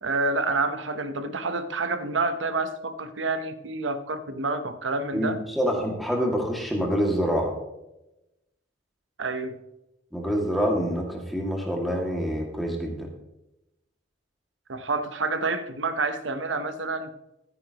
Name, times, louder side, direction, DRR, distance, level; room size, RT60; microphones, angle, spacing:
voice 1, 0.0-5.4 9.2-9.6 14.7-17.1, right 3 dB, 80° right, 10 dB, 1.0 m, -28 dB
voice 2, 5.1-7.5 10.1-13.1, equal, ahead, -1 dB, 2.2 m, -26 dB
14.5 x 9.7 x 3.0 m, 0.92 s
head